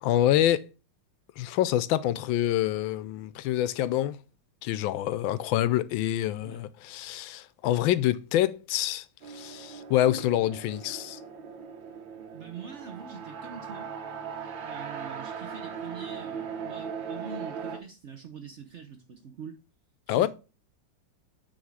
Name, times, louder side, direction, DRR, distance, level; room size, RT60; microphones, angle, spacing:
voice 1, 0.0-0.7 1.4-4.2 4.6-11.2 20.1-20.3, left 13 dB, 90° left, 1.3 m, -26 dB
sound 1, 9.2-17.8, right 6 dB, 85° right, 1.7 m, -39 dB
voice 2, 12.3-13.9 14.6-19.6 20.1-20.3, right 6 dB, 55° right, 0.8 m, -44 dB
8.8 x 3.5 x 4.8 m
omnidirectional pair, 2.1 m